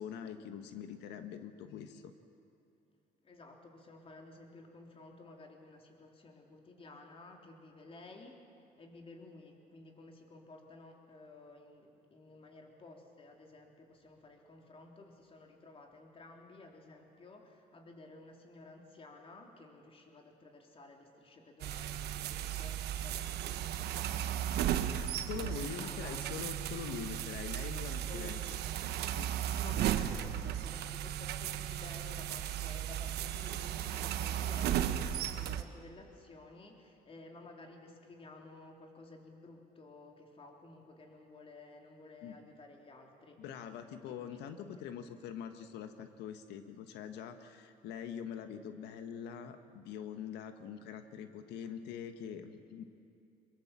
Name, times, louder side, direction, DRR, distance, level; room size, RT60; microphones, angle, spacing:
voice 1, 0.0-2.1 25.3-28.4 29.1-29.3 42.2-42.4 43.4-52.8, left 8 dB, 85° left, 8 dB, 1.5 m, -44 dB
voice 2, 3.2-8.4 8.8-26.2 28.0-28.6 29.6-43.4 44.1-44.3 44.8-44.9, left 2 dB, 35° left, 2 dB, 3.6 m, -54 dB
sound 1, 21.6-35.6, right 11 dB, 75° right, 1.2 m, -35 dB
22.5 x 22.5 x 7.5 m, 2.7 s
cardioid pair, 110°, 17 cm